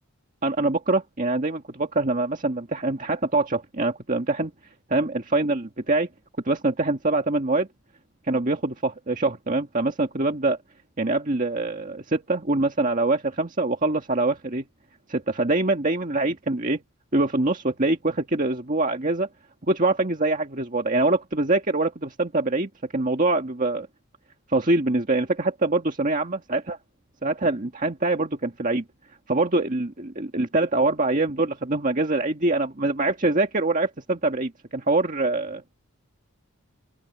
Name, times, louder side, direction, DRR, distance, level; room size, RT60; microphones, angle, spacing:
voice 1, 0.4-4.5 4.9-6.1 6.4-7.7 8.3-10.6 11.0-14.6 15.1-16.8 17.1-19.3 19.7-23.9 24.5-26.8 27.2-28.8 29.3-35.6, right 2 dB, 35° right, 1.7 m, -24 dB
open air
head